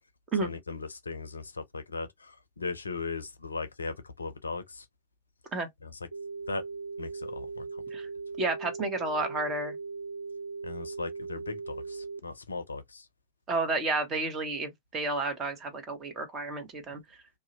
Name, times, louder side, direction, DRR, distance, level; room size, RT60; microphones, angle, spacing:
voice 1, 0.4-2.1 2.6-4.8 5.8-5.9 6.5-6.6 7.0-7.6 10.6-13.0, left 4 dB, 75° left, 0.5 m, -37 dB
sound 1, 6.1-12.2, right 4 dB, 85° right, 0.4 m, -39 dB
voice 2, 8.4-9.7 13.5-17.0, right 3 dB, 25° right, 1.0 m, -31 dB
2.6 x 2.1 x 2.7 m
figure-of-eight pair, 90°, 0 cm